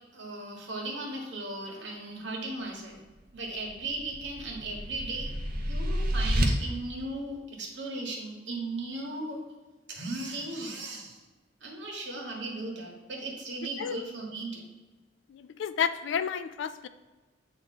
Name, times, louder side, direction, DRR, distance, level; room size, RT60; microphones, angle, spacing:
voice 1, 0.1-3.0 3.3-9.4 9.9-11.2 11.6-14.6, right 2 dB, 70° right, -1 dB, 1.4 m, -37 dB
sound 1, 3.6-6.4, equal, 55° right, 0.7 m, -30 dB
voice 2, 15.3-16.9, left 7 dB, 70° left, 13 dB, 0.3 m, -31 dB
8.3 x 3.0 x 4.2 m, 1.3 s
head